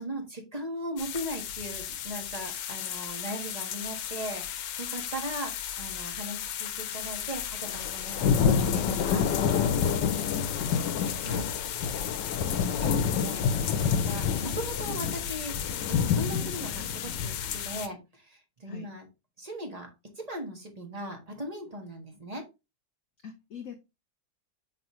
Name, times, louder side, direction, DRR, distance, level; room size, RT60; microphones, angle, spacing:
voice 1, 0.0-9.2 11.2-11.5 12.8-15.5 15.9-19.1 19.4-19.9 20.2-22.4, right 1 dB, 25° right, 1.4 m, -39 dB
sound 1, 1.0-17.9, left 7 dB, 90° left, 1.4 m, -29 dB
voice 2, 9.9-10.9 18.6-18.9 23.2-23.8, left 7 dB, 55° left, 1.0 m, -43 dB
5.8 x 5.5 x 3.0 m
omnidirectional pair, 1.8 m